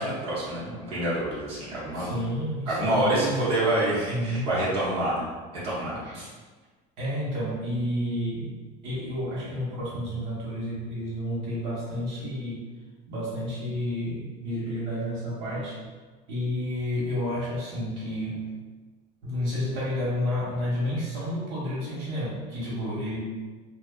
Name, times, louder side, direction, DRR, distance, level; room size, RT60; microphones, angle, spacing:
voice 1, 0.0-2.1 2.7-5.3 5.6-6.3, right 1 dB, 30° right, -10 dB, 0.9 m, -27 dB
voice 2, 1.9-3.5 4.1-4.5 6.0-6.2 7.0-8.6 8.8-12.6 13.1-15.8 16.3-18.5 19.2-23.2, equal, 70° right, -7 dB, 1.1 m, -30 dB
2.6 x 2.5 x 2.3 m, 1.4 s
cardioid pair, 170°, 19 cm